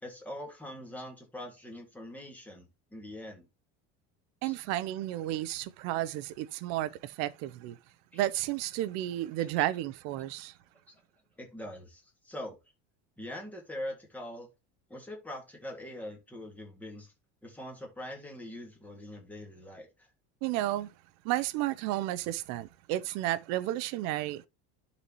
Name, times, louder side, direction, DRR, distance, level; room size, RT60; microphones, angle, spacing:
voice 1, 0.0-3.5 4.4-4.6 8.1-8.2 9.4-9.5 10.9-11.0 11.4-12.6 13.2-14.5 14.9-17.1 17.4-20.1, left 1 dB, 5° left, 1.8 m, -43 dB
voice 2, 4.4-7.8 8.1-10.5 20.4-20.9 21.2-24.5, right 14 dB, 55° right, 0.6 m, -32 dB
11.0 x 4.1 x 2.9 m
cardioid pair, 175°, 32 cm